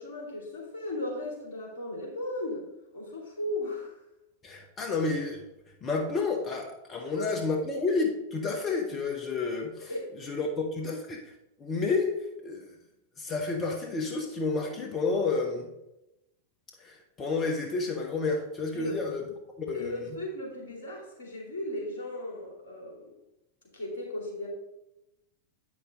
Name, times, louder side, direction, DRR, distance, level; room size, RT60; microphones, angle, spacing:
voice 1, 0.0-2.6 2.9-4.0 7.0-7.3 9.9-10.1 18.7-19.0 19.7-23.1 23.7-24.5, left 1 dB, 60° left, -3 dB, 2.9 m, -36 dB
voice 2, 4.4-5.4 5.8-11.2 11.6-12.1 12.4-12.7 13.2-15.7 16.8-19.2 19.6-20.1, left 4 dB, 25° left, 2 dB, 1.1 m, -30 dB
8.4 x 6.0 x 3.8 m, 0.90 s
figure-of-eight pair, 90°, 0 cm